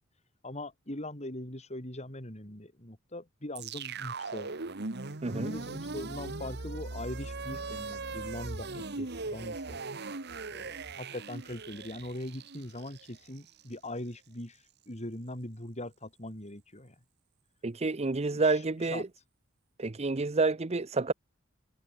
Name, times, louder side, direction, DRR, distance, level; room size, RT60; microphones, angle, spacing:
voice 1, 0.4-4.5 5.3-9.8 10.5-17.0 18.3-19.1, left 1 dB, 35° left, 4.5 m, -41 dB
sound 1, 3.5-13.7, right 3 dB, 55° right, 1.5 m, -39 dB
voice 2, 5.2-5.6 17.6-19.0 19.8-21.1, right 3 dB, 30° right, 0.7 m, -29 dB
head